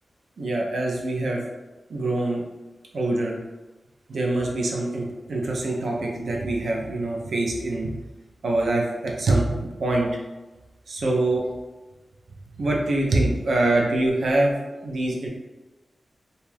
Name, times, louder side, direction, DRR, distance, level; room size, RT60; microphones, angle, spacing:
voice 1, 0.4-1.4 1.9-2.4 2.9-3.4 4.1-7.9 8.4-10.1 10.9-11.4 12.6-14.5 14.8-15.3, right 2 dB, 75° right, -1 dB, 0.5 m, -24 dB
2.7 x 2.3 x 3.2 m, 1.1 s
wide cardioid pair, 120°, 0 cm